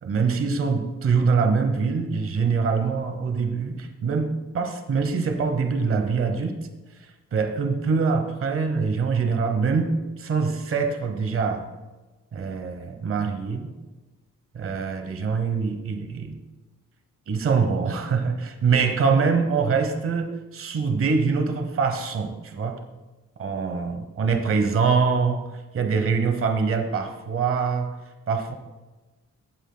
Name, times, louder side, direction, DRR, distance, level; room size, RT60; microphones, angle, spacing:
voice 1, 0.0-6.6 7.3-11.6 12.3-13.7 14.5-16.4 17.3-22.8 23.4-25.4 25.7-27.9 28.3-28.6, right 5 dB, 45° right, 6 dB, 0.9 m, -24 dB
15.5 x 8.8 x 2.2 m, 1.2 s
wide cardioid pair, 180°, 31 cm